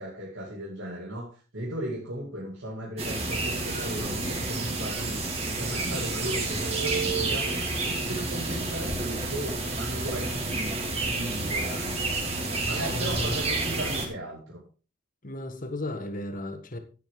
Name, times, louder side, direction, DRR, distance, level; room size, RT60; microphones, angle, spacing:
voice 1, 0.0-7.6 7.8-12.0 12.6-14.6, right 1 dB, 85° right, 2.7 m, -36 dB
sound 1, 3.0-14.1, right 2 dB, 30° right, 2.6 m, -30 dB
voice 2, 12.9-13.4 15.2-16.8, left 1 dB, 45° left, 1.6 m, -34 dB
11.0 x 10.5 x 3.8 m
head